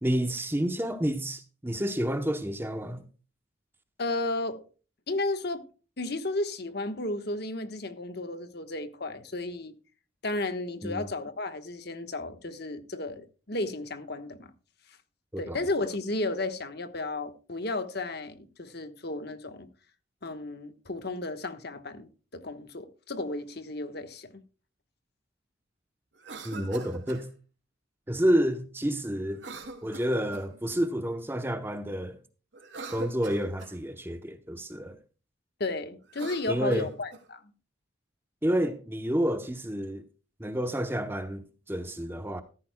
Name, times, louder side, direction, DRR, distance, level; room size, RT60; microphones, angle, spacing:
voice 1, 0.0-3.0 10.8-11.1 15.3-15.6 26.4-27.3 28.1-29.5 29.8-32.2 32.9-35.0 36.5-36.9 38.4-40.0 40.4-42.4, equal, 10° right, 0.8 m, -29 dB
voice 2, 4.0-4.6 5.1-5.6 6.0-9.7 10.2-14.5 15.4-19.7 20.2-24.3 35.6-37.4, left 2 dB, 55° left, 1.2 m, -33 dB
Cough, 26.1-27.3 29.3-30.6 32.5-33.8 36.0-37.2, right 3 dB, 65° right, 2.4 m, -43 dB
15.0 x 13.5 x 2.2 m
head